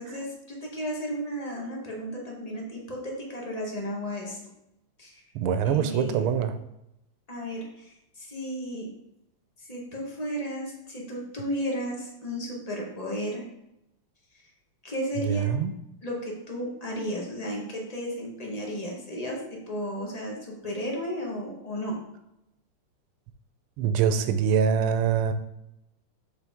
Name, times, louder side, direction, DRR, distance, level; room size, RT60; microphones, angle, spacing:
voice 1, 0.0-4.4 5.0-5.2 5.6-6.3 7.3-8.9 9.6-13.5 14.8-15.5 16.0-22.0, equal, 25° left, -1 dB, 0.9 m, -34 dB
voice 2, 5.3-6.5 15.3-15.7 23.8-25.3, right 7 dB, 90° right, 9 dB, 1.5 m, -24 dB
6.8 x 4.7 x 3.5 m, 0.84 s
omnidirectional pair, 2.3 m